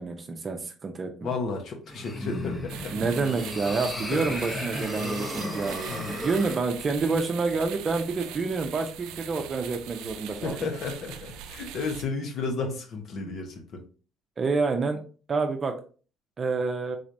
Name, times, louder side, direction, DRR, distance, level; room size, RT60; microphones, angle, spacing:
voice 1, 0.0-1.3 2.9-10.6 14.4-15.0 15.3-15.8 16.4-17.0, right 4 dB, 35° right, 5 dB, 0.6 m, -28 dB
voice 2, 1.2-2.9 4.1-4.2 5.9-6.1 10.4-13.8, left 4 dB, 60° left, 3 dB, 0.9 m, -33 dB
sound 1, 1.9-6.6, left 1 dB, 20° left, 0.8 m, -35 dB
sound 2, 2.7-12.0, right 10 dB, 85° right, 0.4 m, -41 dB
4.0 x 3.2 x 2.6 m, 0.38 s
cardioid pair, 95°, 0 cm